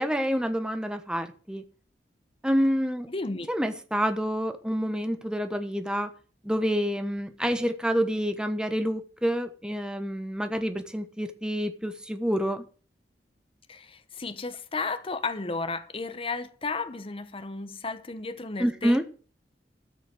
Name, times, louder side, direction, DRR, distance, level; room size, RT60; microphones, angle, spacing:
voice 1, 0.0-1.6 2.4-3.1 3.5-6.1 6.4-12.6 18.6-19.0, equal, 5° right, 1.2 m, -28 dB
voice 2, 3.1-3.5 13.7-19.0, left 3 dB, 30° left, 0.9 m, -33 dB
13.5 x 6.4 x 7.8 m
head